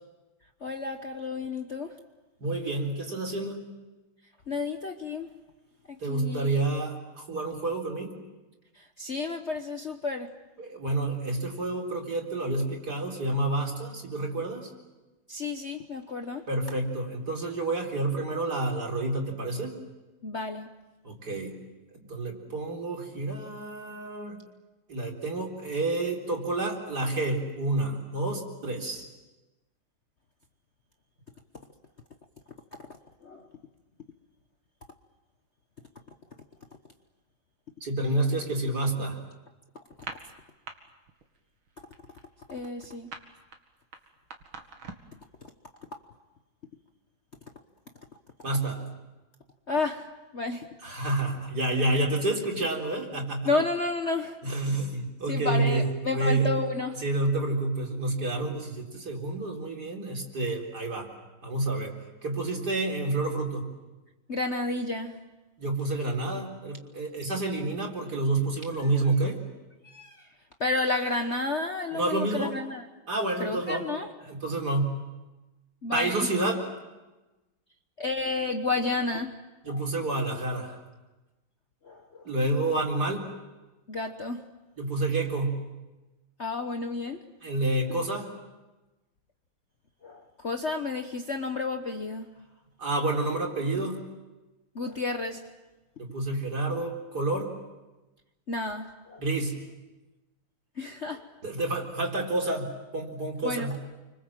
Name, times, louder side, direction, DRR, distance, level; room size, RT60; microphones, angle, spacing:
voice 1, 0.6-1.9 4.5-5.3 6.1-6.5 9.0-10.3 15.3-16.4 20.2-20.7 33.2-33.4 42.5-43.1 49.7-50.1 50.3-50.7 53.4-54.4 55.3-57.0 64.3-65.2 69.9-70.2 70.6-72.8 73.4-74.1 75.8-76.3 78.0-79.3 79.7-79.8 81.9-82.2 83.9-84.4 86.4-87.2 90.0-92.3 94.7-95.4 98.5-99.2 100.8-101.2 103.4-103.7, left 3 dB, 40° left, 5 dB, 1.2 m, -31 dB
voice 2, 2.4-3.6 6.0-8.1 10.6-14.7 16.5-19.8 21.0-21.5 22.1-24.4 24.9-29.0 37.8-39.2 48.4-48.9 50.8-53.5 54.4-56.6 56.9-61.1 61.4-61.9 62.2-63.7 65.6-69.4 71.9-72.5 73.1-73.9 74.2-75.0 75.9-76.7 79.6-80.8 82.2-83.3 84.8-85.6 87.4-88.3 92.8-94.0 96.0-97.5 99.2-99.6 101.4-103.8, right 2 dB, 50° right, 0 dB, 4.6 m, -29 dB
sound 1, 39.9-40.7 41.1-41.4 41.6-45.2, right 4 dB, 75° right, 2.9 m, -43 dB
30.0 x 25.0 x 7.6 m, 1.1 s
omnidirectional pair, 2.2 m